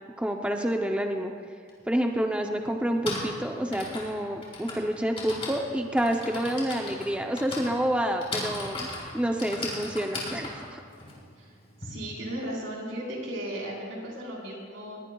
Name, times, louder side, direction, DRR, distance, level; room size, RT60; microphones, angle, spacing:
voice 1, 0.2-1.3 1.9-8.9 9.1-10.8, equal, 5° right, 3 dB, 0.6 m, -28 dB
Typing, 1.7-1.8 2.8-11.9, left 2 dB, 30° left, 3.9 m, -37 dB
voice 2, 11.8-15.0, right 1 dB, 75° right, -3 dB, 4.2 m, -36 dB
21.0 x 18.0 x 2.3 m, 2.1 s
head